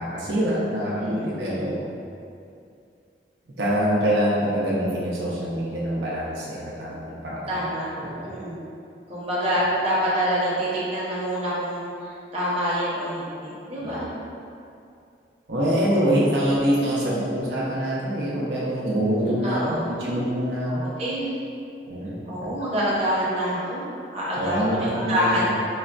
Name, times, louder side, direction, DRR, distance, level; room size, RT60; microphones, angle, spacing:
voice 1, 0.0-1.9 3.6-7.6 8.0-8.3 13.8-14.0 15.5-20.8 21.9-22.7 24.4-25.6, equal, 75° right, -6 dB, 0.5 m, -25 dB
voice 2, 0.8-1.8 7.5-7.9 8.2-8.6 9.1-14.1 16.4-16.5 16.8-17.3 19.4-19.9 20.8-21.3 22.3-23.8 24.1-25.6, equal, 35° right, -8 dB, 0.7 m, -27 dB
4.7 x 2.1 x 2.4 m, 2.5 s
head